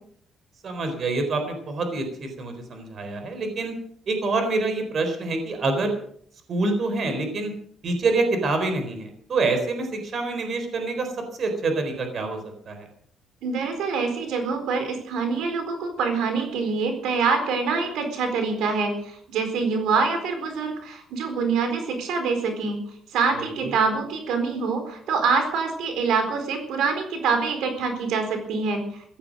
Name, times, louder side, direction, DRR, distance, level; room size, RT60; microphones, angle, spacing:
voice 1, 0.6-3.7 4.1-5.9 6.5-7.5 7.8-11.1 11.4-12.4 12.7-12.9 23.4-23.7, right 3 dB, 45° right, 6 dB, 4.1 m, -26 dB
voice 2, 13.4-22.8 23.1-29.2, right 4 dB, 80° right, 6 dB, 4.2 m, -25 dB
16.0 x 13.5 x 6.4 m, 0.64 s
cardioid pair, 145°, 0 cm